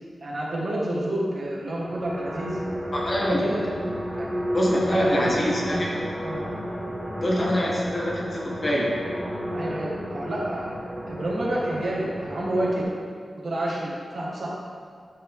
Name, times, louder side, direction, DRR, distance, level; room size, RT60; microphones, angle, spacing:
voice 1, 0.2-2.6 3.2-3.6 4.1-4.3 4.9-5.8 6.2-6.4 9.5-10.7 11.0-12.8 13.4-14.5, right 1 dB, 55° right, -5 dB, 1.8 m, -29 dB
sound 1, 1.4-12.8, equal, 10° right, 1.9 m, -32 dB
voice 2, 2.9-3.4 4.5-5.9 7.2-8.9, equal, 35° left, -4 dB, 1.7 m, -24 dB
11.0 x 5.8 x 3.7 m, 2.1 s
wide cardioid pair, 145°, 0 cm